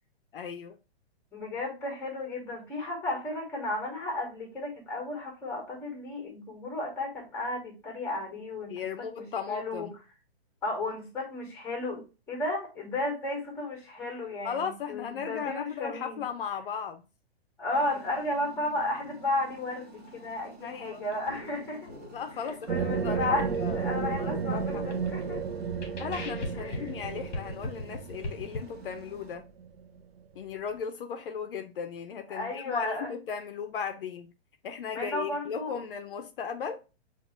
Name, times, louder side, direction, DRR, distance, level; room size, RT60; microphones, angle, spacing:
voice 1, 0.3-0.8 8.7-9.9 14.4-17.0 20.6-21.0 22.1-24.8 26.0-29.4 30.3-34.3 34.6-36.8, left 7 dB, 60° left, 0.5 m, -36 dB
voice 2, 1.3-9.9 10.6-16.2 17.6-21.9 22.7-25.4 26.6-26.9 32.3-33.1 34.9-35.8, left 2 dB, 5° left, 0.9 m, -34 dB
sound 1, 17.7-29.3, right 2 dB, 45° right, 1.2 m, -51 dB
sound 2, 21.1-28.6, left 2 dB, 25° left, 1.0 m, -41 dB
sound 3, 22.7-30.0, right 6 dB, 65° right, 0.6 m, -33 dB
5.8 x 2.4 x 2.8 m
hypercardioid pair, 160°, 32 cm